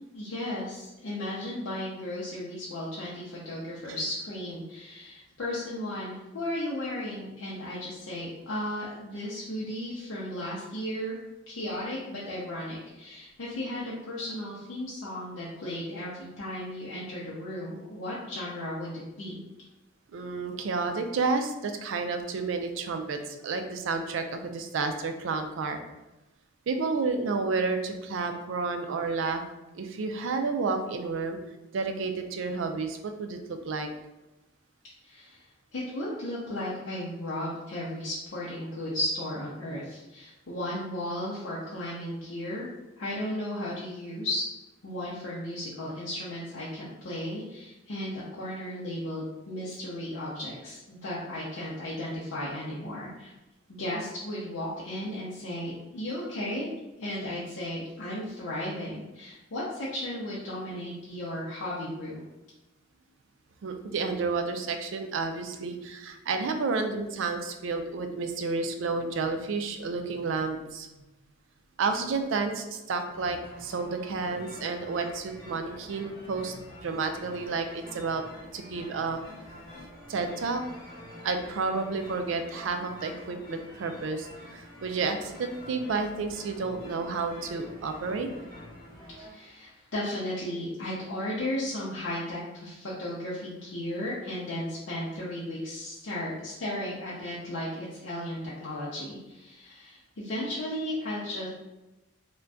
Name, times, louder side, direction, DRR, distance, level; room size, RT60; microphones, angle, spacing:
voice 1, 0.1-11.2 11.5-19.4 35.0-35.4 35.7-42.7 43.0-44.5 44.8-53.3 53.7-56.7 57.0-62.2 89.1-101.5, left 1 dB, 70° left, -7 dB, 0.6 m, -35 dB
voice 2, 20.1-25.8 26.7-29.4 29.7-31.4 31.7-33.9 63.6-70.9 71.8-78.2 78.5-79.2 80.1-80.6 81.2-88.3, right 4 dB, 70° right, 6 dB, 0.4 m, -31 dB
sound 1, 73.1-89.3, left 1 dB, 20° left, 1.0 m, -47 dB
2.5 x 2.2 x 3.4 m, 1.0 s
head